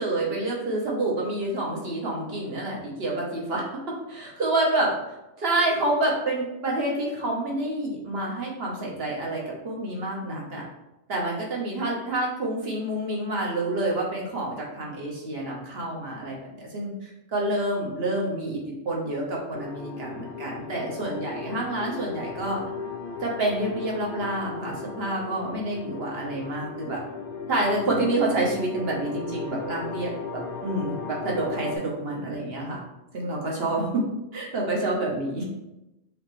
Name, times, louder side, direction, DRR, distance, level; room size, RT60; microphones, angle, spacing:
voice 1, 0.0-3.6 4.1-4.9 5.4-10.6 11.1-22.6 23.2-27.0 27.5-32.8 33.1-34.0 34.3-35.5, right 2 dB, 60° right, -2 dB, 1.4 m, -28 dB
sound 1, 19.5-31.8, left 5 dB, 55° left, 1.0 m, -37 dB
4.9 x 3.1 x 3.2 m, 0.94 s
omnidirectional pair, 1.2 m